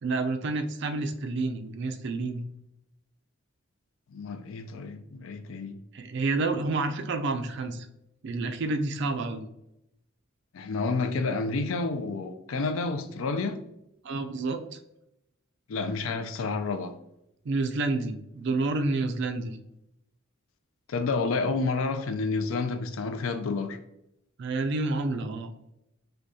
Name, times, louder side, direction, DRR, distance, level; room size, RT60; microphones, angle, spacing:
voice 1, 0.0-2.4 5.9-7.9 8.2-9.4 14.0-14.8 17.4-19.6 24.4-25.5, right 3 dB, 55° right, 0.4 m, -29 dB
voice 2, 4.1-5.8 10.5-13.6 15.7-16.9 20.9-23.8, left 3 dB, 70° left, 0.4 m, -30 dB
6.1 x 2.3 x 2.7 m
head